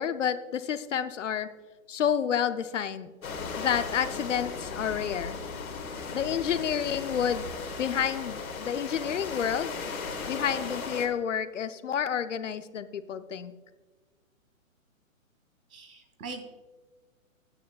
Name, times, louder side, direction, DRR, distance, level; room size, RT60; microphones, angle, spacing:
voice 1, 0.0-1.5 1.9-3.1 3.6-5.4 6.1-7.5 7.8-9.7 10.3-13.5, left 8 dB, 60° left, 12 dB, 0.6 m, -29 dB
sound 1, 3.2-11.1, left 4 dB, 85° left, 1.8 m, -36 dB
voice 2, 15.7-16.4, right 4 dB, 90° right, 5 dB, 2.2 m, -41 dB
14.0 x 9.2 x 2.3 m, 1.3 s
hypercardioid pair, 175°, 42 cm